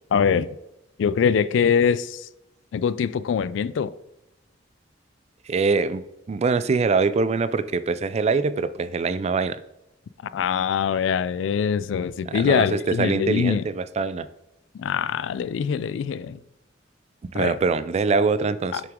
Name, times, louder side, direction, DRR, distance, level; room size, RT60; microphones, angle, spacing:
voice 1, 0.1-0.5 1.0-2.3 2.7-3.9 10.3-13.6 14.7-16.4 17.4-17.6 18.7-18.8, left 7 dB, 70° left, 0.3 m, -23 dB
voice 2, 5.5-6.0 6.3-9.6 12.3-14.3 17.2-18.8, right 4 dB, 35° right, 0.3 m, -23 dB
7.0 x 5.9 x 3.6 m
head